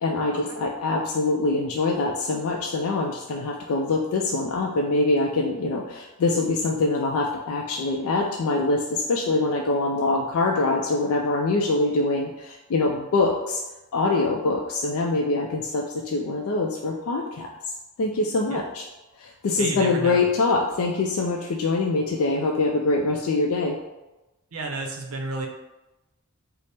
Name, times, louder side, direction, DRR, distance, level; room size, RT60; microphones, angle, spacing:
voice 1, 0.0-13.6 13.9-17.5 18.0-18.8 19.2-23.7, left 3 dB, 65° left, 0 dB, 0.4 m, -24 dB
voice 2, 19.6-20.3 24.5-25.5, right 3 dB, 70° right, 2 dB, 0.6 m, -32 dB
3.3 x 2.0 x 4.1 m, 1.0 s
head